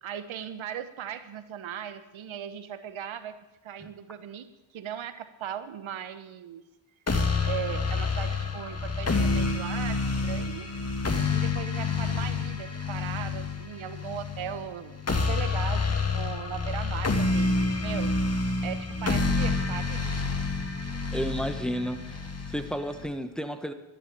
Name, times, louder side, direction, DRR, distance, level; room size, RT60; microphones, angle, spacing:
voice 1, 0.0-3.4 3.6-6.6 7.1-10.7 11.3-15.8 16.1-18.1 18.6-20.0 20.8-20.9, right 9 dB, 70° right, 11 dB, 1.4 m, -38 dB
sound 1, 7.1-23.1, left 3 dB, 30° left, 2.2 m, -28 dB
voice 2, 21.1-23.7, equal, ahead, 8 dB, 1.6 m, -32 dB
12.5 x 10.0 x 8.4 m, 1.0 s
supercardioid pair, 55°, 49 cm